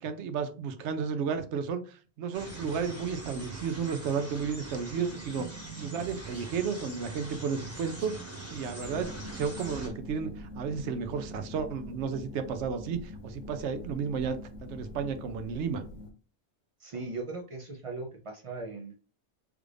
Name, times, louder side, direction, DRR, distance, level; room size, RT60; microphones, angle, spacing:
voice 1, 0.0-8.2 8.5-15.8, right 6 dB, 75° right, 10 dB, 0.9 m, -33 dB
sound 1, 2.3-9.9, right 2 dB, 15° right, 0.9 m, -43 dB
sound 2, 8.8-16.1, left 1 dB, 85° left, 1.0 m, -44 dB
voice 2, 16.8-19.0, right 3 dB, 55° right, 3 dB, 0.3 m, -38 dB
3.4 x 2.4 x 3.2 m, 0.36 s
omnidirectional pair, 1.2 m